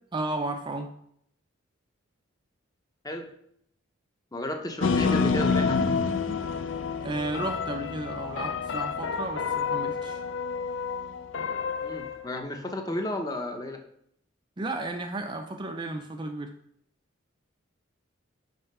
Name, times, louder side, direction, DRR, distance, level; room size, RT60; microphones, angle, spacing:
voice 1, 0.1-0.9 7.0-10.2 14.6-16.5, right 2 dB, 20° right, 5 dB, 0.4 m, -33 dB
voice 2, 4.3-5.8 11.8-13.8, left 1 dB, 20° left, 4 dB, 0.8 m, -33 dB
sound 1, 4.8-12.4, left 5 dB, 60° left, 0.5 m, -28 dB
5.6 x 5.1 x 5.4 m, 0.69 s
head